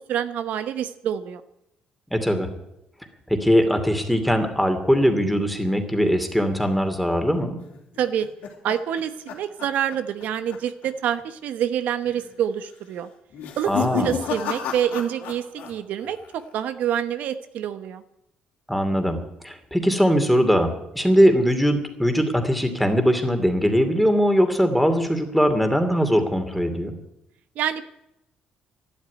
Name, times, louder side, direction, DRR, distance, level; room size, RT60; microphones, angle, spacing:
voice 1, 0.0-1.4 8.0-8.3 8.6-13.1 13.6-18.0 27.6-27.9, right 9 dB, 75° right, 10 dB, 1.0 m, -27 dB
voice 2, 2.1-2.5 3.3-7.6 13.7-14.1 18.7-19.2 19.4-27.0, equal, ahead, 6 dB, 2.5 m, -21 dB
sound 1, 7.7-10.2 10.5-10.9 11.2-11.3 12.0-12.4 13.3-15.7 16.0-16.6, left 8 dB, 85° left, 3.3 m, -32 dB
12.0 x 12.0 x 9.6 m, 0.84 s
cardioid pair, 110°, 3 cm